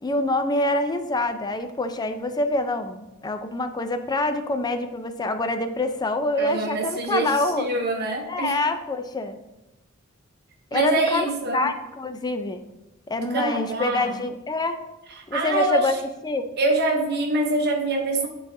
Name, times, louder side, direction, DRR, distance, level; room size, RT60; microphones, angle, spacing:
voice 1, 0.0-7.7 8.3-9.4 10.7-11.2 11.5-12.6 13.1-14.8 15.3-15.9 16.2-16.4, left 2 dB, 20° left, 8 dB, 0.4 m, -26 dB
voice 2, 6.4-8.6 10.7-11.7 13.2-14.2 15.1-16.0 16.6-18.3, right 2 dB, 50° right, 1 dB, 0.8 m, -25 dB
9.5 x 4.0 x 2.6 m, 0.96 s
head